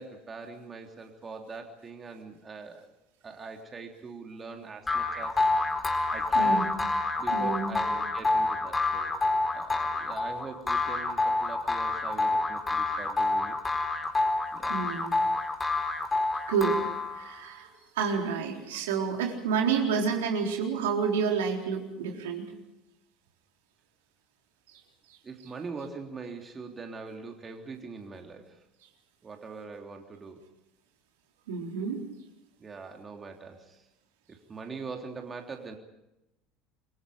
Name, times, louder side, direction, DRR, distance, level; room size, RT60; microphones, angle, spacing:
voice 1, 0.0-2.9 3.2-5.4 5.7-6.7 7.2-9.2 9.5-13.6 14.5-14.8 25.2-28.6 29.2-30.4 32.6-33.9 34.3-35.7, right 4 dB, 25° right, 3 dB, 3.3 m, -42 dB
sound 1, 4.9-17.4, left 3 dB, 20° left, 4.2 m, -28 dB
voice 2, 6.3-6.7 7.3-7.8 14.7-15.2 16.5-16.8 17.1-17.7 17.9-22.5 24.7-24.8 31.5-32.0, right 6 dB, 70° right, 1 dB, 4.1 m, -29 dB
28.5 x 24.0 x 5.1 m, 0.90 s
figure-of-eight pair, 65°, 0 cm